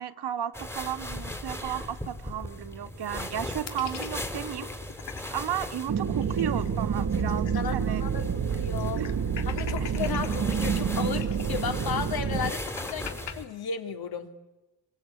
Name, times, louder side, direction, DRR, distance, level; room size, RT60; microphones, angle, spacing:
voice 1, 0.0-4.7 5.3-8.2 8.9-9.1, right 9 dB, 60° right, 10 dB, 1.7 m, -34 dB
sound 1, 0.5-13.5, left 1 dB, 5° left, 2.6 m, -38 dB
sound 2, 3.7-5.4 5.8-5.9 6.1-7.9 8.2-8.3 8.8-10.4 11.0-13.3, left 9 dB, 75° left, 2.8 m, -41 dB
sound 3, 5.9-12.5, right 7 dB, 40° right, 1.4 m, -28 dB
voice 2, 7.5-9.0 9.4-14.3, left 7 dB, 55° left, 6 dB, 3.0 m, -34 dB
29.0 x 23.0 x 8.6 m, 1.1 s
cardioid pair, 115°, 44 cm